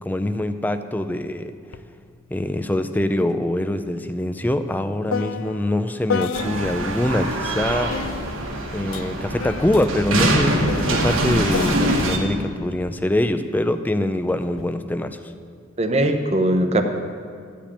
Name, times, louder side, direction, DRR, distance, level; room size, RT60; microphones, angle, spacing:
voice 1, 0.0-1.5 2.3-8.0 8.7-15.2, left 1 dB, 10° left, 9 dB, 0.4 m, -24 dB
sound 1, 1.7-1.9 2.2-7.0 7.9-13.4 14.3-14.7, left 6 dB, 70° left, 0.4 m, -33 dB
sound 2, 6.3-12.2, right 1 dB, 85° right, 1.5 m, -23 dB
voice 2, 15.8-16.8, right 1 dB, 30° right, 5 dB, 0.7 m, -20 dB
13.0 x 5.2 x 8.5 m, 2.1 s
head